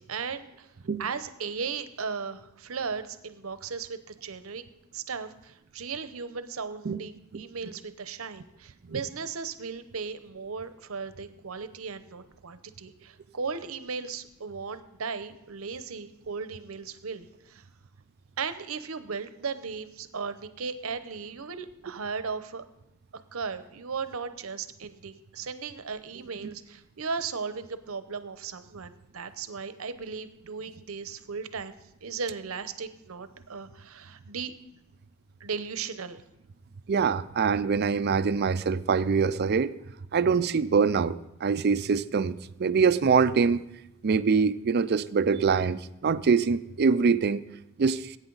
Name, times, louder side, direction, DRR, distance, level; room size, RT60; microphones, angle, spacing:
voice 1, 0.0-0.7 1.0-4.6 4.9-17.6 18.4-22.6 23.3-31.7 32.0-34.5 35.4-36.2, right 5 dB, 75° right, 11 dB, 0.8 m, -36 dB
voice 2, 36.9-39.7 40.1-41.2 41.4-43.6 44.0-47.4 47.8-48.2, right 5 dB, 50° right, 14 dB, 0.4 m, -24 dB
19.5 x 8.9 x 3.9 m, 0.88 s
head